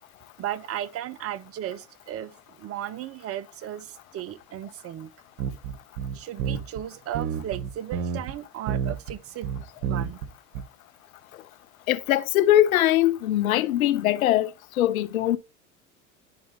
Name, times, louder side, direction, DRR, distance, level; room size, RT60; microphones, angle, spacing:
voice 1, 0.4-2.3 2.6-5.1 6.1-9.5 9.8-10.2, right 12 dB, 35° right, 0.7 m, -35 dB
sound 1, 5.4-6.8 7.1-8.3 8.7-9.1 9.4-10.3 10.5-10.6, right 8 dB, 65° right, 1.1 m, -29 dB
voice 2, 11.9-15.4, left 13 dB, 80° left, 0.7 m, -22 dB
10.5 x 4.1 x 3.4 m
hypercardioid pair, 80°, 41 cm